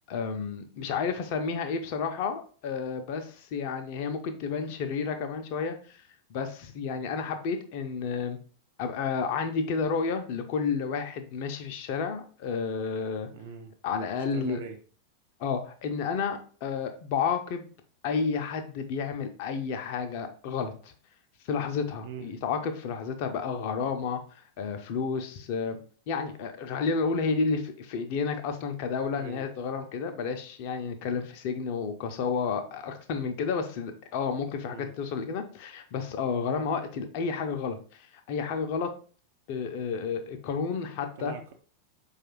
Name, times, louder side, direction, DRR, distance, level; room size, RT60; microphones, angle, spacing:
voice 1, 0.1-6.0 6.3-8.4 8.8-13.3 13.8-14.6 15.4-17.6 18.0-20.9 21.4-25.8 26.1-38.9 39.5-41.4, left 5 dB, 45° left, 0.5 m, -31 dB
voice 2, 13.3-13.7 14.2-14.8 22.0-22.4 29.1-29.4 34.7-34.9 41.2-41.5, right 6 dB, 55° right, 0.5 m, -42 dB
4.6 x 2.4 x 2.9 m
figure-of-eight pair, 90°, 0 cm